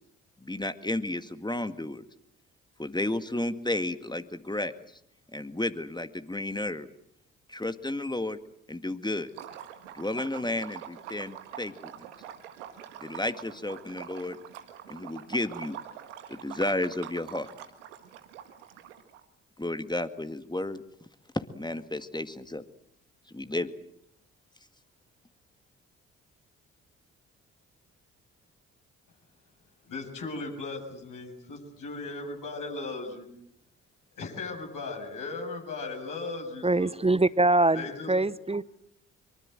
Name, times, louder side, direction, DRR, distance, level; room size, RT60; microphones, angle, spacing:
voice 1, 0.4-2.1 2.8-4.8 5.3-6.9 7.5-8.4 8.7-9.3 9.9-12.1 13.0-14.4 14.9-15.8 16.3-17.5 19.6-20.8 21.3-22.6 23.3-23.7, left 1 dB, 10° left, 11 dB, 1.9 m, -32 dB
Liquid, 9.3-19.2, right 10 dB, 85° right, 1.7 m, -45 dB
voice 2, 29.9-33.3 34.2-36.9 37.7-38.1, left 3 dB, 60° left, 2 dB, 7.3 m, -37 dB
voice 3, 36.6-38.8, right 2 dB, 15° right, 18 dB, 1.0 m, -24 dB
24.0 x 23.5 x 7.8 m, 0.74 s
hypercardioid pair, 40°, 36 cm